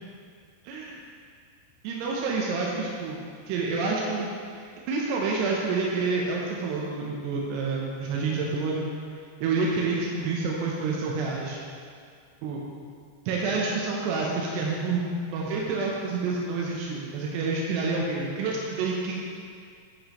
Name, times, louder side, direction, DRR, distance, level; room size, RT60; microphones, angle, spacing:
voice 1, 0.6-1.0 1.8-3.2 3.5-4.3 4.6-8.8 9.4-11.6 12.4-12.6 13.3-19.1, right 4 dB, 90° right, -2 dB, 2.7 m, -28 dB
8.1 x 2.9 x 5.1 m, 2.2 s
omnidirectional pair, 4.7 m